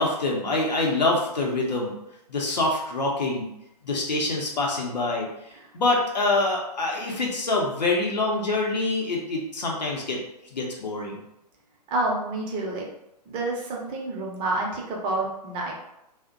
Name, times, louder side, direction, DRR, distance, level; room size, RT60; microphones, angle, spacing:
voice 1, 0.0-1.9 2.3-3.5 3.8-5.3 5.7-10.2 10.5-11.2, left 2 dB, 85° left, -1 dB, 0.6 m, -25 dB
voice 2, 11.9-12.8 13.3-15.7, right 2 dB, 25° right, -2 dB, 0.5 m, -28 dB
2.5 x 2.1 x 2.4 m, 0.83 s
hypercardioid pair, 120°, 21 cm